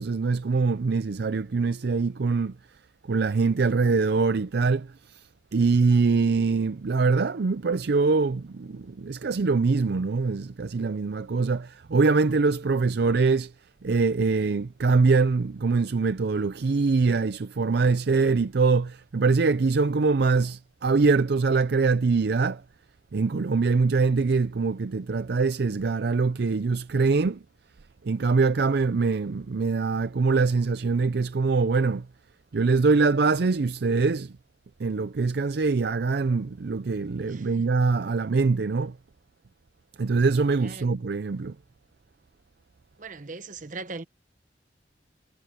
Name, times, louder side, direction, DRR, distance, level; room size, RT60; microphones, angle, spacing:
voice 1, 0.0-2.6 3.0-5.2 5.5-13.5 13.8-22.6 23.1-27.4 28.0-32.1 32.5-34.4 34.8-39.0 40.0-41.6, right 4 dB, 65° right, 0.5 m, -23 dB
voice 2, 37.2-37.6 40.6-40.9 43.0-44.0, right 3 dB, 45° right, 1.1 m, -39 dB
head